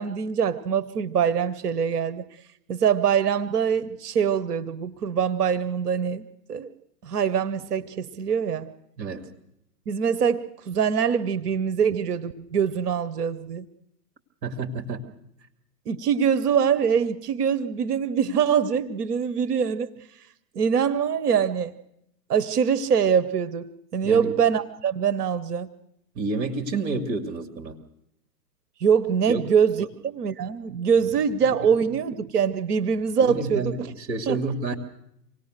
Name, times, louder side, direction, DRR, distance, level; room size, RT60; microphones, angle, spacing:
voice 1, 0.0-2.2 2.7-6.7 7.0-8.7 9.9-13.7 15.9-19.9 20.5-21.7 22.3-25.7 28.8-33.9 34.3-34.4, right 7 dB, 65° right, 11 dB, 1.2 m, -24 dB
voice 2, 9.0-9.3 14.4-15.0 24.0-24.3 26.1-27.8 29.3-29.4 29.8-29.9 31.0-31.4 33.2-34.7, right 3 dB, 45° right, 5 dB, 2.7 m, -30 dB
27.0 x 18.5 x 6.7 m, 0.79 s
hypercardioid pair, 120°, 49 cm